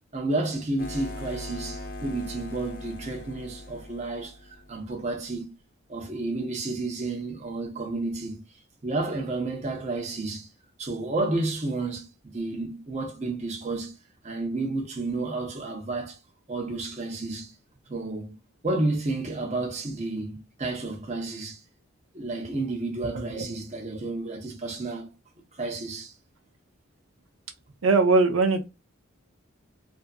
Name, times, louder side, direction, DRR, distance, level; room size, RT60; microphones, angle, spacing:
voice 1, 0.1-4.4 4.7-5.5 5.9-8.4 8.8-10.5 10.8-13.9 14.2-16.2 16.5-17.5 17.9-18.4 18.6-21.6 22.1-25.1 25.6-26.1, right 2 dB, 35° right, 0.6 m, -31 dB
sound 1, 0.8-5.1, left 1 dB, 45° left, 0.6 m, -40 dB
voice 2, 23.1-23.5 27.8-28.7, right 3 dB, 75° right, 0.6 m, -21 dB
2.5 x 2.3 x 2.4 m
head